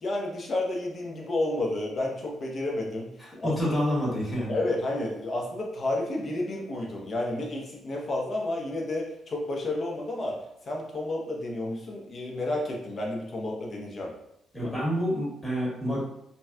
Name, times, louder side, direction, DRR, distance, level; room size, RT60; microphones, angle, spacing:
voice 1, 0.0-3.8 4.5-10.4 10.6-14.1 14.6-14.7, left 2 dB, 45° left, -1 dB, 0.8 m, -31 dB
voice 2, 3.4-4.6 14.5-16.0, equal, 15° left, -6 dB, 1.5 m, -28 dB
3.9 x 2.2 x 2.4 m, 0.80 s
cardioid pair, 90°, 0 cm